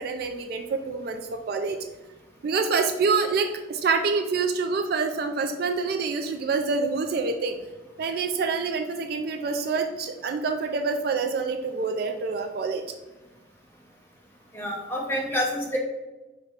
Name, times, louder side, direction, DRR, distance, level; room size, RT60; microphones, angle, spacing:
voice 1, 0.0-1.8 2.4-7.6 8.0-12.8, right 4 dB, 50° right, 5 dB, 0.3 m, -26 dB
voice 2, 14.5-15.8, equal, 10° left, -3 dB, 0.8 m, -28 dB
5.0 x 2.2 x 4.6 m, 1.1 s
head